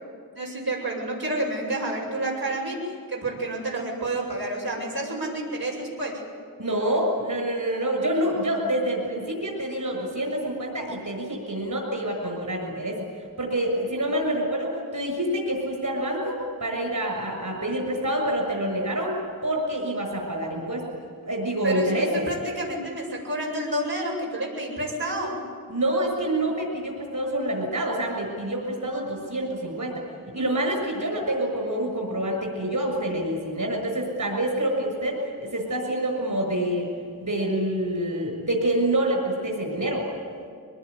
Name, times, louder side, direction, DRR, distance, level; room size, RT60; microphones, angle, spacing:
voice 1, 0.3-6.2 21.6-25.4, right 1 dB, 80° right, -4 dB, 6.9 m, -29 dB
voice 2, 6.6-13.1 13.4-19.1 19.4-20.8 21.3-22.2 25.7-30.0 30.3-36.9 37.2-40.1, right 1 dB, 55° right, 1 dB, 6.8 m, -27 dB
23.5 x 20.0 x 9.7 m, 2.2 s
wide cardioid pair, 70°, 37 cm